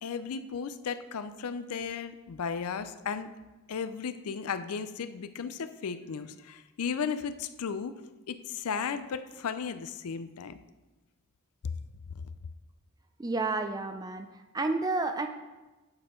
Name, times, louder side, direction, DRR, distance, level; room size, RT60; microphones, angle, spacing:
voice 1, 0.0-3.3 3.7-8.0 8.3-10.6, left 6 dB, 80° left, 12 dB, 0.5 m, -35 dB
voice 2, 13.2-15.3, right 3 dB, 15° right, 7 dB, 0.4 m, -31 dB
8.9 x 5.5 x 4.4 m, 1.2 s
head